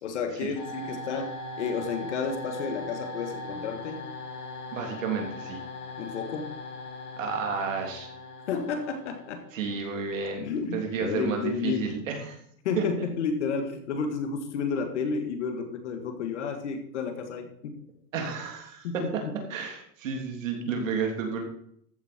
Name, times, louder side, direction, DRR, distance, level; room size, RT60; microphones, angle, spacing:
voice 1, 0.0-4.0 6.0-6.5 8.5-9.4 10.4-11.9 12.6-17.8 18.8-19.1, left 5 dB, 45° left, 6 dB, 1.8 m, -31 dB
sound 1, 0.5-9.5, left 2 dB, 25° left, 2.5 m, -39 dB
voice 2, 4.7-5.6 7.2-8.1 9.5-10.4 10.7-12.4 12.7-12.9 18.1-21.4, right 5 dB, 55° right, 2 dB, 3.3 m, -31 dB
14.5 x 8.4 x 4.4 m, 0.68 s
supercardioid pair, 180°, 47 cm